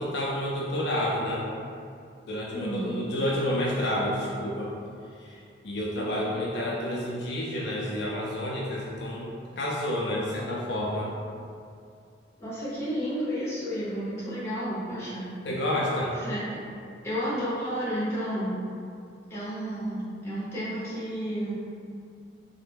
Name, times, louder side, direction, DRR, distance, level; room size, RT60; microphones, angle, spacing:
voice 1, 0.0-1.4 2.3-4.7 5.2-11.1 15.4-16.2, left 1 dB, 65° left, -4 dB, 0.4 m, -29 dB
voice 2, 2.5-3.1 12.4-15.3 16.2-16.6 17.0-18.5 19.3-21.5, equal, 15° left, -10 dB, 0.8 m, -31 dB
3.2 x 2.1 x 3.4 m, 2.4 s
head